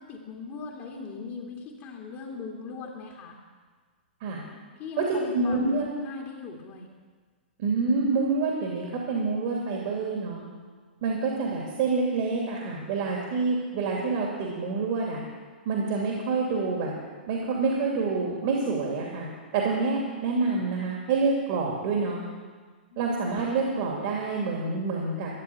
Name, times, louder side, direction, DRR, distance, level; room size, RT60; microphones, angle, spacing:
voice 1, 0.0-3.4 4.8-6.9 22.9-23.0, left 5 dB, 35° left, 0 dB, 2.2 m, -39 dB
voice 2, 5.0-5.9 7.6-10.4 11.0-15.2 15.6-16.9 17.3-19.3 19.5-22.2 23.0-25.3, right 4 dB, 50° right, -1 dB, 2.7 m, -27 dB
13.5 x 7.4 x 9.3 m, 1.5 s
hypercardioid pair, 115°, 6 cm